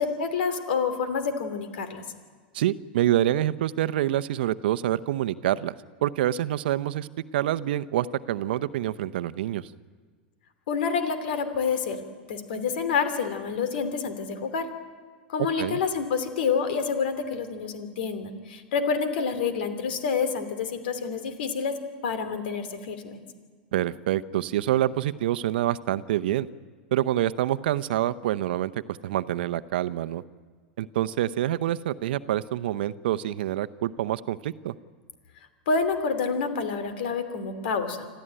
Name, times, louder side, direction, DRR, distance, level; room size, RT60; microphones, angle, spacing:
voice 1, 0.0-2.0 10.7-12.0 12.3-14.7 15.3-21.7 22.0-23.2 35.7-38.1, left 5 dB, 70° left, 10 dB, 3.0 m, -28 dB
voice 2, 2.5-5.7 6.0-9.7 15.6-15.8 23.7-26.5 26.9-30.2 30.8-34.7, right 13 dB, 70° right, 16 dB, 0.8 m, -26 dB
26.5 x 14.5 x 8.9 m, 1.5 s
hypercardioid pair, 100°, 6 cm